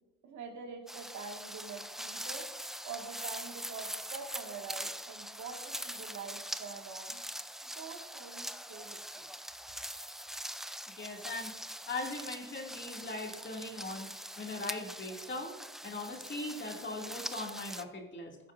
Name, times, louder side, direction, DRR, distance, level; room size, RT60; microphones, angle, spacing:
voice 1, 0.2-2.5 2.8-7.2 7.6-9.3, right 5 dB, 70° right, 3 dB, 1.8 m, -45 dB
sound 1, 0.9-17.8, equal, ahead, 0.4 m, -43 dB
voice 2, 10.9-11.6 11.9-15.5 15.8-18.5, left 2 dB, 40° left, 1 dB, 2.3 m, -40 dB
16.0 x 8.7 x 2.5 m, 1.1 s
cardioid pair, 90°, 30 cm